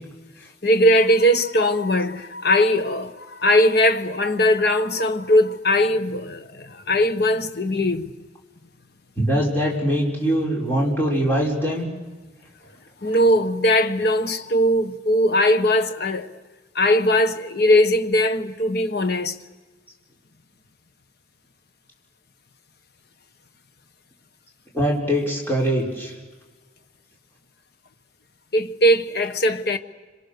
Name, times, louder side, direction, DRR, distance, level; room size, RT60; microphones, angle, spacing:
voice 1, 0.6-8.1 13.0-16.3 16.7-19.3 28.5-29.8, left 1 dB, 55° left, 1.2 m, -20 dB
voice 2, 9.2-11.9 24.7-26.1, equal, 10° left, 5.2 m, -22 dB
26.5 x 26.5 x 6.8 m
head